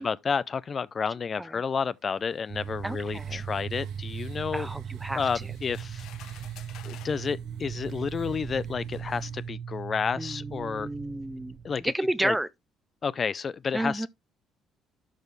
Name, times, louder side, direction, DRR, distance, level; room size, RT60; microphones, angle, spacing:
voice 1, 0.0-4.7 5.1-6.1 6.8-10.9 11.6-11.8 12.2-12.4 13.0-14.1, left 6 dB, 35° left, 0.4 m, -30 dB
sound 1, 2.0-9.5, right 7 dB, 80° right, 2.1 m, -58 dB
sound 2, 2.5-11.9, right 8 dB, 55° right, 0.6 m, -38 dB
voice 2, 2.8-3.4 4.5-5.2 10.2-12.5 13.7-14.1, right 1 dB, 10° right, 0.6 m, -31 dB
sound 3, 5.0-7.2 8.2-8.3 8.9-9.1, left 11 dB, 75° left, 0.9 m, -51 dB
12.0 x 4.4 x 3.1 m
cardioid pair, 105°, 0 cm